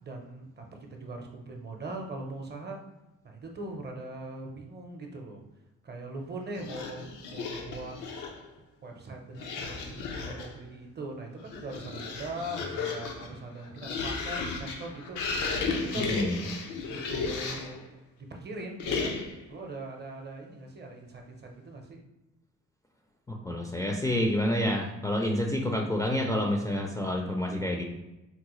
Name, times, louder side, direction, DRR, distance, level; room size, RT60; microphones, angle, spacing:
voice 1, 0.0-2.8 3.2-5.4 5.8-8.0 8.8-15.5 15.8-16.1 16.8-22.0, right 2 dB, 35° right, 2 dB, 0.6 m, -41 dB
sound 1, 6.6-8.5 9.3-10.6 11.3-17.8 18.8-19.5, left 4 dB, 90° left, 0.6 m, -34 dB
voice 2, 15.9-16.4 23.3-27.8, left 1 dB, 10° left, 0 dB, 0.4 m, -28 dB
3.8 x 2.1 x 3.0 m, 0.98 s
cardioid pair, 90°, 30 cm